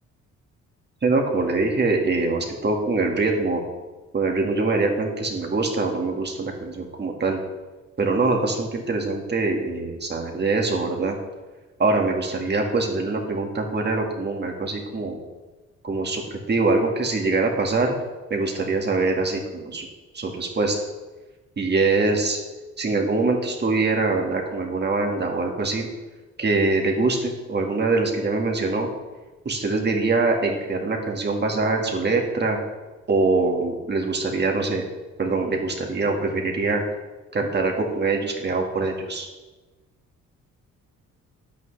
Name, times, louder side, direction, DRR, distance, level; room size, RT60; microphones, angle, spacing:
voice 1, 1.0-3.6 4.1-7.4 8.0-11.2 11.8-15.2 15.8-17.9 18.3-19.9 20.1-20.8 21.6-22.4 22.8-25.9 26.4-28.9 29.5-32.6 33.1-34.8 35.2-36.8 37.3-39.3, right 3 dB, 35° right, 2 dB, 1.9 m, -23 dB
11.0 x 8.7 x 3.3 m, 1.2 s
cardioid pair, 90°, 30 cm